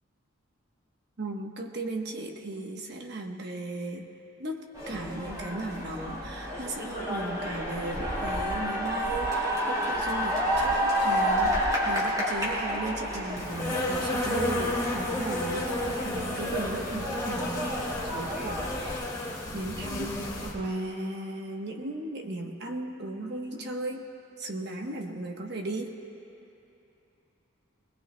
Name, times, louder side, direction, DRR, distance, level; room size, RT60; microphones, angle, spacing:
voice 1, 1.2-4.1 4.4-17.7 18.0-19.1 19.5-20.1 20.4-24.1 24.4-25.9, right 2 dB, 50° right, 2 dB, 1.0 m, -36 dB
sound 1, 4.7-19.0, equal, 20° right, 3.3 m, -30 dB
Insect, 13.4-20.5, left 1 dB, 20° left, 2.2 m, -32 dB
22.0 x 20.5 x 2.2 m, 2.8 s
head